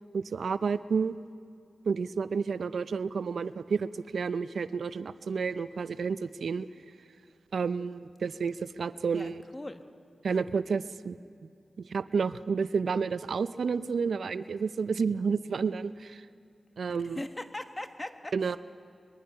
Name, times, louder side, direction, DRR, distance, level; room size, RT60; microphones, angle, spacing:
voice 1, 0.1-1.2 1.9-6.7 7.5-9.4 10.2-11.2 11.8-16.2 16.8-17.2 18.3-18.6, right 5 dB, 75° right, 14 dB, 0.5 m, -30 dB
voice 2, 9.1-9.8 10.3-10.4 17.1-18.6, left 1 dB, 25° left, 8 dB, 1.5 m, -40 dB
24.5 x 21.5 x 5.7 m, 2.5 s
cardioid pair, 45°, 0 cm